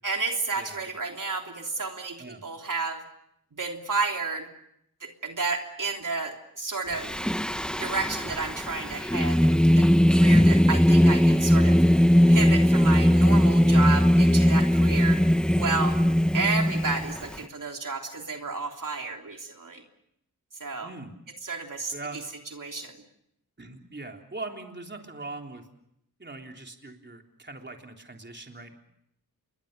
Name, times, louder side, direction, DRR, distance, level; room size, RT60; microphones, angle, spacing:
voice 1, 0.0-3.0 3.5-4.5 5.0-7.1 7.7-11.8 12.3-15.2 15.6-16.0 16.3-19.8 20.6-20.9 21.4-21.9 22.6-22.9, right 4 dB, 60° right, 2 dB, 3.4 m, -31 dB
voice 2, 0.6-0.9 2.2-2.4 13.6-14.0 20.8-21.1 21.9-22.2 23.6-25.7 26.2-28.7, right 2 dB, 30° right, 3 dB, 3.5 m, -41 dB
Singing, 7.0-17.4, equal, ahead, 1.0 m, -20 dB
28.5 x 22.5 x 6.8 m, 0.76 s
cardioid pair, 55°, 37 cm